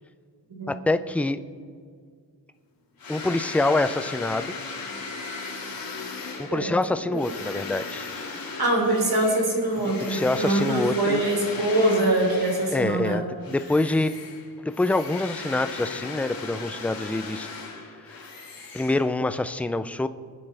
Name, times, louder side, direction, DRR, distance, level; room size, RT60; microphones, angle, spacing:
voice 1, 0.7-1.4 3.1-4.6 6.4-8.1 10.0-11.2 12.7-14.1 14.6-17.5 18.1-18.2 18.7-20.1, left 2 dB, 5° left, 11 dB, 0.4 m, -26 dB
sound 1, 3.0-13.1 13.4-19.4, left 4 dB, 55° left, 2.1 m, -37 dB
voice 2, 8.6-13.2, right 1 dB, 65° right, 0 dB, 3.5 m, -24 dB
23.0 x 9.7 x 3.4 m, 2.1 s
wide cardioid pair, 120°, 41 cm